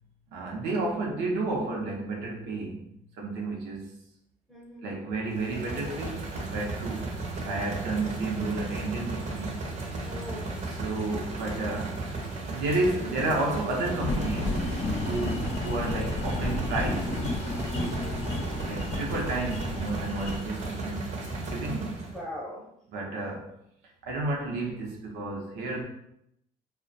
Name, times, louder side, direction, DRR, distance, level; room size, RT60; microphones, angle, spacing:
voice 1, 0.3-4.0 4.8-9.6 10.6-12.1 12.5-14.7 15.0-17.1 18.6-22.1 22.9-23.5 24.0-25.8, right 2 dB, 85° right, -1 dB, 0.6 m, -32 dB
voice 2, 4.5-4.8 7.4-7.8 10.0-10.7 21.7-21.9 22.1-22.7, left 1 dB, ahead, -3 dB, 0.7 m, -41 dB
sound 1, 5.3-22.2, right 3 dB, 45° right, 0.6 m, -35 dB
sound 2, 14.0-20.4, left 2 dB, 40° left, 0.5 m, -32 dB
2.4 x 2.1 x 2.5 m, 0.76 s
cardioid pair, 110°, 17 cm